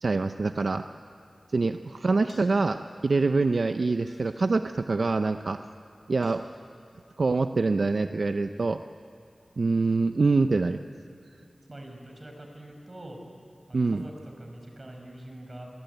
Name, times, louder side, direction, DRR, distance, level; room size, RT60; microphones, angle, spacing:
voice 1, 0.0-0.8 1.5-5.6 6.1-6.4 7.2-8.8 9.6-10.8 13.7-14.1, right 3 dB, 70° right, 8 dB, 0.6 m, -25 dB
sound 1, 2.3-2.7 4.1-4.8 6.2-7.0, left 2 dB, 85° left, 6.1 m, -57 dB
voice 2, 11.7-13.2 13.8-15.7, right 1 dB, 40° right, 2 dB, 5.4 m, -44 dB
26.5 x 18.5 x 9.2 m, 2.5 s
wide cardioid pair, 75°, 0 cm